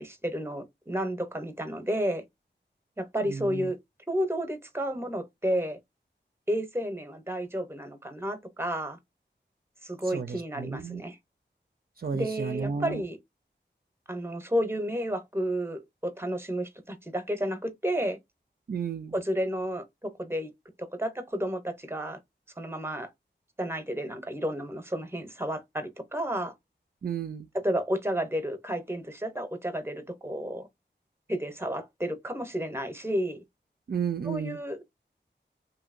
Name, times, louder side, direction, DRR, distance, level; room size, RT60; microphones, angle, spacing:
voice 1, 0.0-2.2 3.0-3.8 4.1-5.8 6.5-9.0 9.8-11.2 12.1-13.2 14.1-18.2 19.1-20.5 20.8-22.2 22.6-23.1 23.6-26.5 27.6-30.7 31.3-33.4 34.2-34.9, equal, 10° right, 0.8 m, -31 dB
voice 2, 3.2-3.7 10.0-11.0 12.0-13.0 18.7-19.1 27.0-27.5 33.9-34.6, right 6 dB, 50° right, 0.4 m, -33 dB
2.8 x 2.7 x 2.5 m
wide cardioid pair, 50°, 19 cm